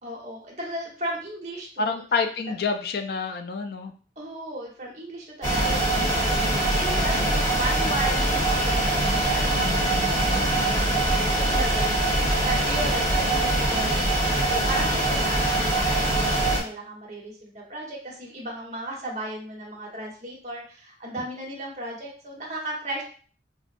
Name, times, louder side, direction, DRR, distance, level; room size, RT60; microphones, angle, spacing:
voice 1, 0.0-2.0 4.2-9.7 10.3-12.0 12.4-14.0 14.5-23.0, right 1 dB, 40° right, -2 dB, 1.1 m, -35 dB
voice 2, 1.8-3.9 9.5-10.7, left 4 dB, 60° left, 7 dB, 0.4 m, -29 dB
sound 1, 5.4-16.6, right 1 dB, 20° left, 1.1 m, -23 dB
5.1 x 2.1 x 2.5 m, 0.42 s
head